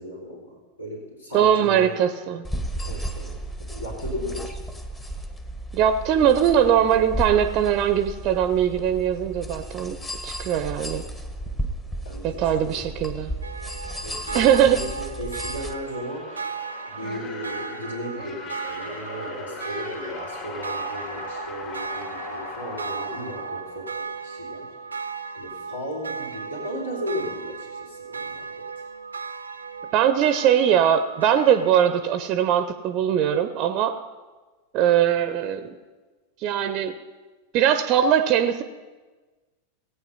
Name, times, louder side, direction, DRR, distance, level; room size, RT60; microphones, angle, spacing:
voice 1, 0.0-2.0 2.8-4.5 12.1-12.9 14.0-16.5 16.9-24.7 25.3-28.7, equal, 75° left, -3 dB, 3.3 m, -36 dB
voice 2, 1.3-2.4 5.7-11.1 12.2-13.3 14.3-14.8 29.9-34.0 34.7-35.7 36.4-37.0 37.5-38.6, right 9 dB, 40° right, 10 dB, 0.7 m, -21 dB
sound 1, 2.4-15.7, right 1 dB, 15° left, 1.2 m, -34 dB
sound 2, 13.4-32.2, right 5 dB, 75° right, 0.6 m, -36 dB
sound 3, 15.4-24.3, left 5 dB, 40° left, 2.3 m, -39 dB
17.5 x 8.7 x 5.5 m, 1.3 s
figure-of-eight pair, 90°, 0 cm